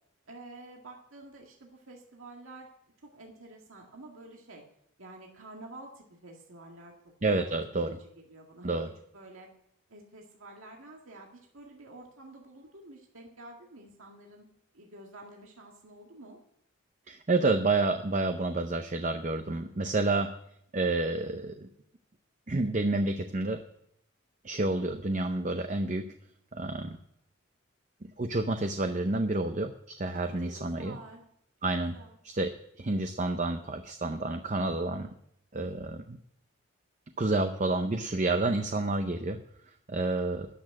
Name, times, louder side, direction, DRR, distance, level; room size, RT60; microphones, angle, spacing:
voice 1, 0.3-2.7 3.0-4.6 5.0-6.9 7.3-7.5 7.8-8.0 8.3-8.8 9.1-9.5 9.9-14.4 14.7-16.4 30.1-31.2 31.9-32.2, right 2 dB, 80° right, 0 dB, 1.9 m, -49 dB
voice 2, 7.2-8.0 8.6-8.9 17.1-20.3 20.7-21.7 22.5-23.6 24.4-26.1 26.5-27.0 28.2-31.0 31.6-32.0 32.2-35.1 35.5-36.2 37.2-39.4 39.9-40.5, right 2 dB, 35° right, 7 dB, 0.6 m, -29 dB
13.0 x 6.3 x 9.6 m, 0.75 s
head